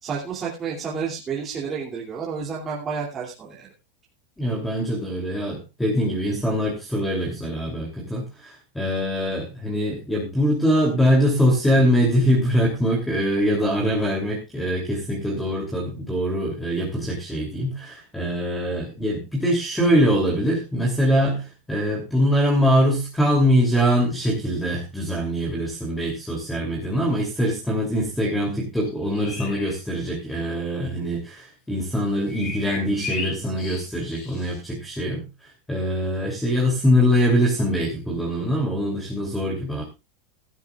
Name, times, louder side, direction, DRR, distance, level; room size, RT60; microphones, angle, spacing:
voice 1, 0.0-3.7 7.2-7.3, right 6 dB, 20° right, -5 dB, 2.8 m, -30 dB
voice 2, 4.4-35.3 35.7-39.8, equal, 5° left, 1 dB, 2.9 m, -23 dB
sound 1, 28.8-29.7 32.3-34.6, left 5 dB, 40° left, 5.0 m, -35 dB
18.0 x 12.0 x 2.4 m, 0.27 s
supercardioid pair, 160°, 0 cm